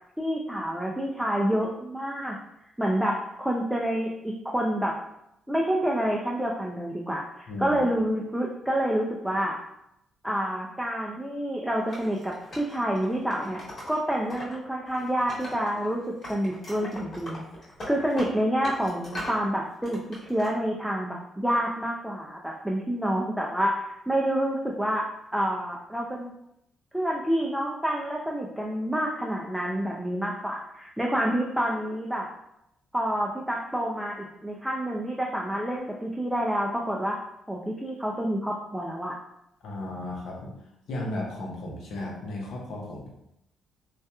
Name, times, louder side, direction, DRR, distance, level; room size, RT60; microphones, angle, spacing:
voice 1, 0.2-2.4 2.8-4.9 5.5-9.6 10.2-13.6 13.9-16.0 16.3-17.4 17.9-20.0 20.3-25.1 25.3-26.3 26.9-32.3 32.9-37.2 37.5-39.2, equal, 5° right, -1 dB, 0.3 m, -28 dB
voice 2, 7.5-7.8 19.9-20.0 39.6-43.1, left 2 dB, 75° left, -2 dB, 0.7 m, -35 dB
Wood, 11.9-14.6 14.9-15.9 16.2-19.4 19.8-20.5, left 1 dB, 45° left, 1.2 m, -40 dB
2.8 x 2.3 x 2.2 m, 0.83 s
cardioid pair, 90°, 0 cm